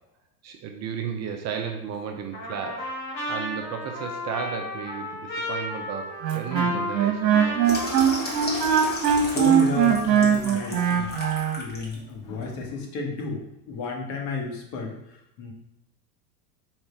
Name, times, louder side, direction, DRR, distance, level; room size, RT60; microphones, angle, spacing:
voice 1, 0.4-2.8 3.3-7.6, right 7 dB, 35° right, 3 dB, 0.7 m, -34 dB
Trumpet, 2.3-8.9, left 1 dB, 85° left, 1.9 m, -34 dB
Wind instrument woodwind instrument, 6.2-11.6, right 8 dB, 80° right, 1.1 m, -21 dB
Water tap faucet / Sink (filling or washing), 7.6-11.9 12.4-12.6, left 1 dB, 20° left, 1.5 m, -33 dB
voice 2, 9.2-11.1 11.6-15.5, left 4 dB, 45° left, 0 dB, 1.6 m, -32 dB
4.9 x 4.3 x 4.4 m, 0.85 s
hypercardioid pair, 110°, 50 cm